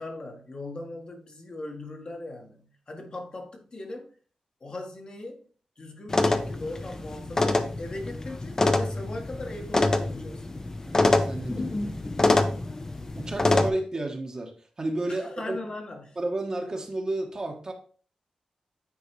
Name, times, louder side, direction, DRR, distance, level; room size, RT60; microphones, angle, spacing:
voice 1, 0.0-4.1 4.6-5.4 5.8-10.5 15.1-16.2, left 2 dB, 45° left, 1.4 m, -39 dB
sound 1, 6.1-13.7, left 2 dB, 25° left, 0.6 m, -25 dB
voice 2, 10.9-11.8 13.1-15.6 16.2-17.7, right 2 dB, 35° right, 1.2 m, -32 dB
9.4 x 4.0 x 3.2 m
wide cardioid pair, 100°, 2 cm